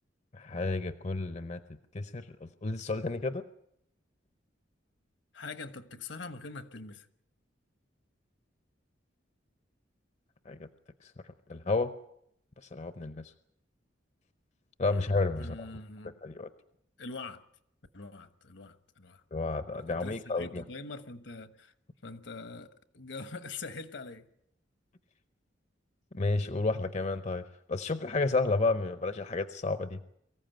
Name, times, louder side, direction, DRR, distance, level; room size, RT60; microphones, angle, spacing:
voice 1, 0.3-1.6 1.9-3.4 10.5-10.7 11.0-11.1 11.5-11.9 12.7-13.3 14.8-15.7 16.2-16.5 19.3-20.6 26.1-30.0, left 3 dB, 35° left, 0.7 m, -31 dB
voice 2, 5.3-7.1 15.4-16.1 17.0-17.4 17.9-19.2 19.7-21.7 22.0-24.2, left 3 dB, 70° left, 1.3 m, -43 dB
23.5 x 15.0 x 9.2 m
head